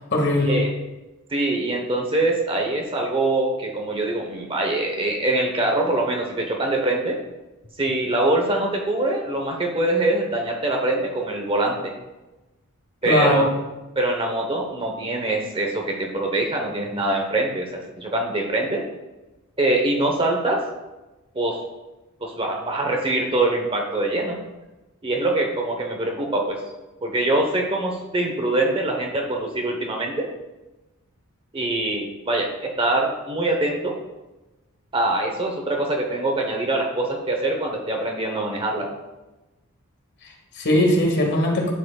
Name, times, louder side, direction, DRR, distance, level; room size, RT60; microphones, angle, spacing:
voice 1, 0.1-0.6 13.0-13.5 40.2-41.7, left 1 dB, 50° left, 0 dB, 1.8 m, -20 dB
voice 2, 1.3-7.2 7.8-11.9 13.0-13.5 14.0-18.9 19.6-20.6 21.3-21.6 22.2-24.4 25.0-26.6 27.0-30.3 31.5-34.0 34.9-38.9, right 2 dB, 25° right, 2 dB, 0.9 m, -24 dB
11.0 x 7.6 x 2.3 m, 1.1 s
head